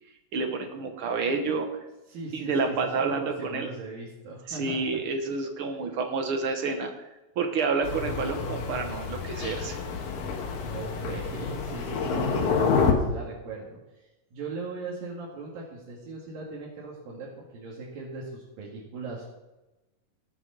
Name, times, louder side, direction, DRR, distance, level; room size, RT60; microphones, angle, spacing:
voice 1, 0.3-1.7 2.3-3.7 4.5-6.9 7.4-9.8, right 4 dB, 65° right, 5 dB, 1.4 m, -29 dB
voice 2, 2.1-5.0 10.6-13.8 14.3-19.4, right 3 dB, 90° right, -5 dB, 3.8 m, -39 dB
Thunder, 7.8-12.9, left 5 dB, 80° left, 3.1 m, -28 dB
18.0 x 8.0 x 3.9 m, 1.0 s
omnidirectional pair, 3.9 m